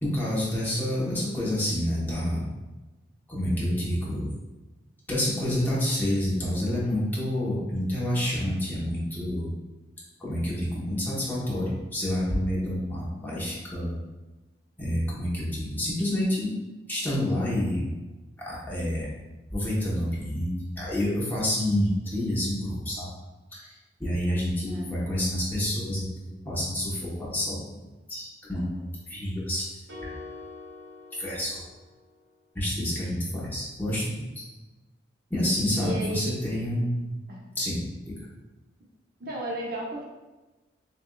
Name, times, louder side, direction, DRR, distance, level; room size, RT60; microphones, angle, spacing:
voice 1, 0.0-2.4 3.3-4.3 5.1-9.5 10.2-14.0 14.8-16.6 16.9-17.9 18.4-19.1 19.5-23.1 23.5-27.8 28.1-29.7 30.0-30.1 31.1-31.6 32.5-34.4 35.3-37.1 37.5-38.2, left 1 dB, 10° left, -8 dB, 1.2 m, -28 dB
sound 1, 29.9-32.2, left 3 dB, 85° right, 1.0 m, -44 dB
voice 2, 35.7-36.3 37.3-37.5 39.2-40.0, right 1 dB, 55° right, -4 dB, 0.9 m, -33 dB
6.9 x 2.6 x 2.4 m, 1.1 s
head